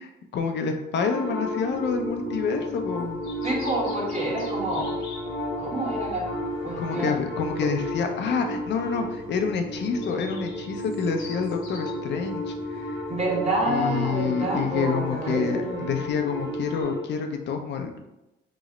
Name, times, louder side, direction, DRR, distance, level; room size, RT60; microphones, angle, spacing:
voice 1, 0.0-3.2 6.8-12.9 13.6-18.1, left 5 dB, 60° left, 5 dB, 0.4 m, -28 dB
sound 1, 1.0-17.0, left 1 dB, 85° right, 1.0 m, -33 dB
sound 2, 1.2-16.8, left 2 dB, 80° left, 0.9 m, -46 dB
voice 2, 3.4-4.9 5.6-6.3 6.6-7.2 13.1-15.9, right 2 dB, 35° right, -4 dB, 1.2 m, -28 dB
2.9 x 2.0 x 3.7 m, 0.95 s
cardioid pair, 90°, 20 cm